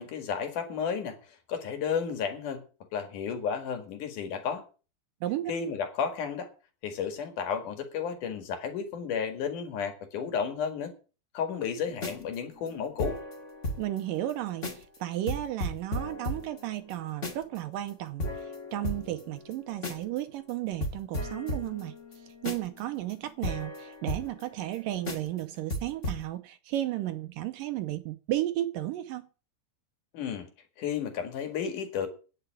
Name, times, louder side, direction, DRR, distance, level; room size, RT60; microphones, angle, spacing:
voice 1, 0.0-2.6 2.9-4.6 5.5-6.5 6.8-10.9 11.3-13.2 30.1-30.5 30.8-32.1, left 7 dB, 55° left, 3.1 m, -32 dB
voice 2, 5.2-5.5 13.8-21.9 22.4-29.3, right 14 dB, 80° right, 2.0 m, -33 dB
sound 1, 11.9-14.0 14.3-14.4 14.6-15.0 15.3-17.6 17.9-18.0 18.2-20.2 20.5-20.6 20.8-24.8 25.0-25.4 25.7-26.2, left 1 dB, 25° left, 1.6 m, -36 dB
10.0 x 6.8 x 9.1 m
omnidirectional pair, 4.7 m